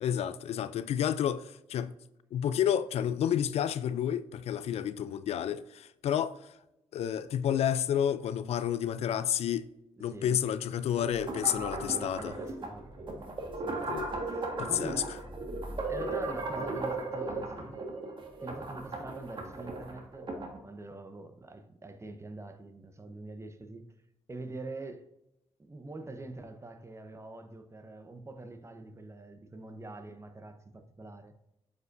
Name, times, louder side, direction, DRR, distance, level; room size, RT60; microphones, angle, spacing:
voice 1, 0.0-1.9 2.3-6.4 6.9-9.7 10.0-12.3 13.9-14.1 14.6-15.0, left 9 dB, 70° left, 0.4 m, -30 dB
voice 2, 10.0-10.4 11.5-13.0 13.5-13.9 14.3-15.2 15.9-17.9 18.4-20.3 20.6-23.9 24.3-25.1 25.7-31.3, right 2 dB, 25° right, 0.9 m, -44 dB
sound 1, 11.0-20.6, right 2 dB, 45° right, 1.6 m, -37 dB
7.7 x 5.2 x 2.6 m
supercardioid pair, 55°, 11 cm